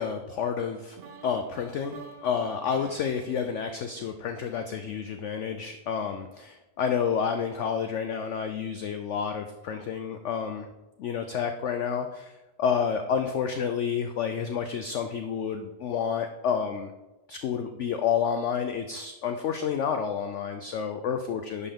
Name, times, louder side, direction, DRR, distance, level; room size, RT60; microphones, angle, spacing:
voice 1, 0.0-10.7 11.0-16.9 17.3-21.7, left 7 dB, 70° left, 7 dB, 0.7 m, -30 dB
sound 1, 1.0-4.9, right 5 dB, 60° right, 0.6 m, -50 dB
10.5 x 5.6 x 3.6 m, 1.0 s
omnidirectional pair, 1.8 m